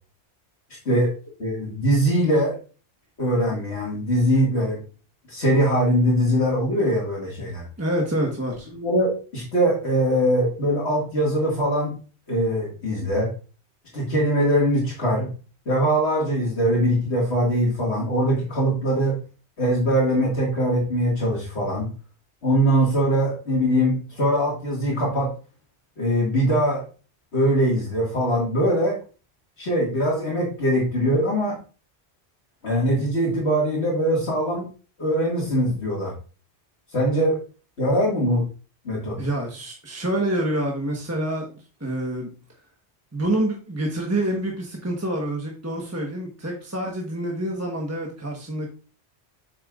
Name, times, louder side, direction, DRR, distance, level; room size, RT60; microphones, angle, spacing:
voice 1, 1.4-2.6 3.2-4.8 5.3-7.6 8.7-11.9 12.3-13.3 13.9-15.3 15.7-19.2 19.6-21.9 22.4-25.3 26.0-26.8 27.3-29.0 29.6-31.6 32.6-34.7 35.0-36.1 36.9-37.4 37.8-38.5 38.9-39.2, equal, 70° left, -4 dB, 2.3 m, -22 dB
voice 2, 7.8-8.7 39.2-42.3 43.1-48.7, right 1 dB, 15° right, -1 dB, 1.2 m, -27 dB
7.8 x 6.3 x 2.5 m, 0.36 s
omnidirectional pair, 1.1 m